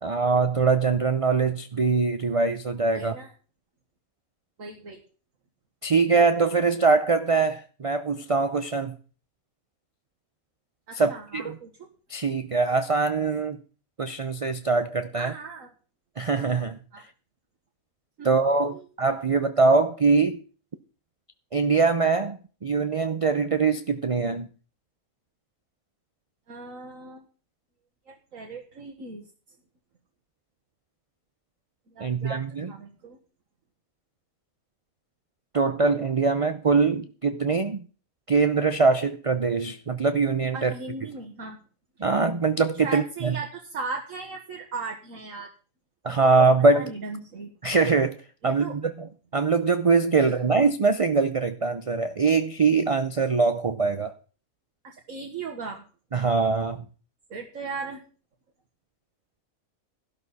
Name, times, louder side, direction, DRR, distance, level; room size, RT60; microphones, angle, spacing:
voice 1, 0.0-3.2 5.8-8.9 10.9-11.6 12.1-13.6 14.0-15.3 16.2-16.8 18.2-20.4 21.5-24.5 32.0-32.7 35.5-37.8 38.3-40.7 42.0-43.4 46.0-46.9 47.6-48.2 48.4-54.1 56.1-56.8, right 4 dB, 45° right, 0.4 m, -23 dB
voice 2, 2.9-3.3 4.6-5.0 10.9-11.9 15.1-15.7 16.9-17.0 18.2-18.4 18.7-18.9 26.5-27.3 28.1-29.2 31.9-33.2 40.5-41.6 42.8-45.5 46.1-46.3 46.7-47.5 48.4-48.8 54.8-55.8 57.3-58.0, right 4 dB, 65° right, 2.0 m, -37 dB
13.0 x 12.0 x 4.2 m
omnidirectional pair, 1.5 m